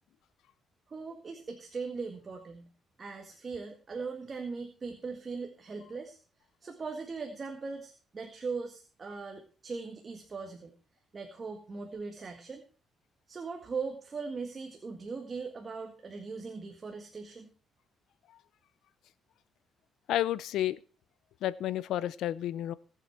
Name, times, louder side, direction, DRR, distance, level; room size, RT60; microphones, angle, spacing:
voice 1, 0.9-2.7 3.0-6.2 6.6-10.7 11.1-12.6 13.3-17.5, right 4 dB, 35° right, 1.8 m, -39 dB
voice 2, 20.1-20.8 21.4-22.7, left 12 dB, 80° left, 0.6 m, -31 dB
18.5 x 7.8 x 4.5 m
cardioid pair, 90°, 0 cm